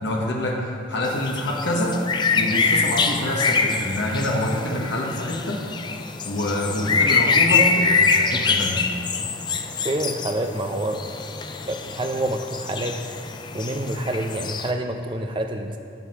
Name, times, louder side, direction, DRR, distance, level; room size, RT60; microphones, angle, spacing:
voice 1, 0.0-0.6 0.9-2.0 2.3-5.6 6.2-8.8, left 1 dB, 75° left, -2 dB, 1.3 m, -26 dB
sound 1, 1.0-14.7, left 4 dB, 25° left, 0.3 m, -24 dB
voice 2, 9.8-11.0 11.6-12.9 13.5-15.8, right 1 dB, 25° right, 5 dB, 0.5 m, -27 dB
8.1 x 7.9 x 5.8 m, 2.4 s
head